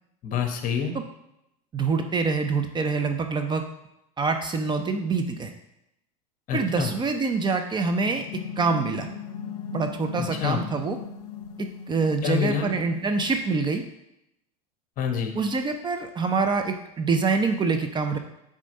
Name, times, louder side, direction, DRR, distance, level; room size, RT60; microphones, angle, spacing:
voice 1, 0.2-1.0 6.5-6.9 10.2-10.6 12.2-12.7 15.0-15.3, left 7 dB, 40° left, 6 dB, 1.2 m, -27 dB
voice 2, 1.7-3.6 4.2-5.5 6.5-8.3 8.6-9.1 9.7-11.0 11.9-13.8 15.3-18.2, right 4 dB, 20° right, 6 dB, 0.6 m, -25 dB
sound 1, 7.9-13.5, left 6 dB, 75° left, 0.6 m, -38 dB
7.5 x 3.8 x 5.3 m, 0.84 s
supercardioid pair, 105°, 20 cm